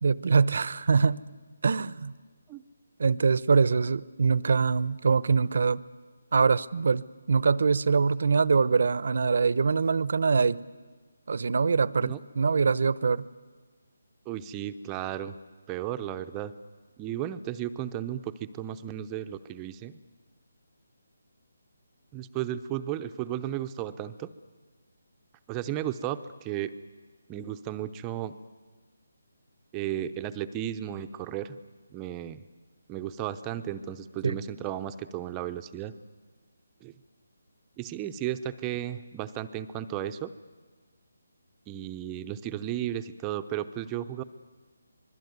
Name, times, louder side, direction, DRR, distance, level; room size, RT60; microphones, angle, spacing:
voice 1, 0.0-1.2 1.6-2.1 3.0-5.8 6.3-10.6 11.3-13.3 34.2-34.4, right 5 dB, 60° right, 19 dB, 0.9 m, -24 dB
voice 2, 14.3-15.3 15.7-16.5 17.0-19.9 22.1-24.3 25.5-26.7 27.3-28.3 29.7-31.6 31.9-32.4 32.9-35.9 36.8-36.9 37.8-40.3 41.7-44.2, right 11 dB, 15° right, 9 dB, 0.7 m, -34 dB
26.0 x 21.0 x 9.5 m, 1.5 s
figure-of-eight pair, 160°, 0 cm